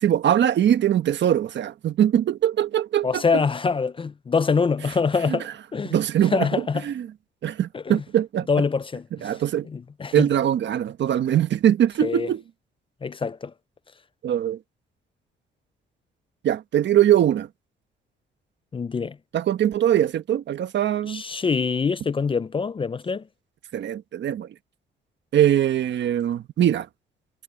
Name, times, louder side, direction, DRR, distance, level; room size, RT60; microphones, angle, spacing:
voice 1, 0.0-3.4 5.3-5.4 5.9-6.5 6.8-7.1 7.4-8.5 9.2-9.7 10.1-12.4 14.2-14.6 16.4-17.5 19.3-21.2 23.7-24.5 25.3-26.9, right 11 dB, 65° right, 1.3 m, -22 dB
voice 2, 3.0-6.8 7.7-8.0 8.5-9.4 9.7-10.3 12.0-12.3 13.0-13.5 18.7-19.2 21.1-23.2, left 5 dB, 25° left, 0.5 m, -25 dB
cardioid pair, 90°, 20 cm